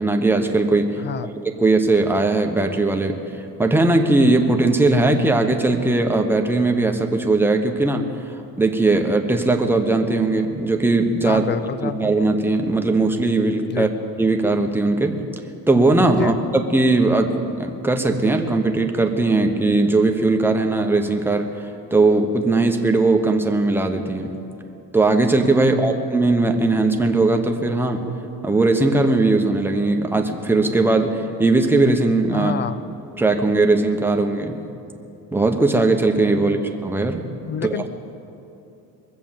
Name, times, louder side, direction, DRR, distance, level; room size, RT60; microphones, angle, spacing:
voice 1, 0.0-1.0 1.4-3.2 3.6-8.1 8.6-11.5 11.8-13.9 14.2-15.2 15.7-21.5 21.9-24.3 24.9-28.1 28.4-32.5 33.2-34.6 35.3-37.2 37.6-37.9, right 2 dB, 5° right, 3 dB, 0.9 m, -19 dB
voice 2, 1.0-1.3 11.2-12.1 13.7-13.9 16.1-16.3 25.5-25.9 32.3-32.8 36.4-36.6 37.5-37.9, left 7 dB, 30° left, 15 dB, 0.4 m, -28 dB
22.0 x 7.6 x 7.3 m, 2.8 s
cardioid pair, 135°, 38 cm